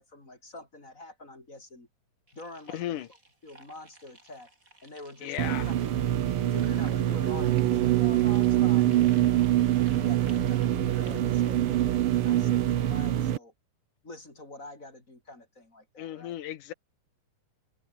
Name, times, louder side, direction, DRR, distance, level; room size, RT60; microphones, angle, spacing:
voice 1, 0.0-1.9 2.3-3.0 3.4-4.5 4.8-5.9 6.5-9.4 10.0-13.5 14.0-16.4, left 2 dB, 20° left, 5.3 m, -46 dB
sound 1, 2.3-11.4, right 2 dB, 25° right, 6.4 m, -56 dB
voice 2, 2.7-3.1 5.2-5.7 16.0-16.7, left 12 dB, 75° left, 2.8 m, -35 dB
sound 2, 5.4-13.4, right 11 dB, 60° right, 1.5 m, -27 dB
sound 3, 7.3-12.7, right 17 dB, 90° right, 2.5 m, -26 dB
omnidirectional pair, 3.8 m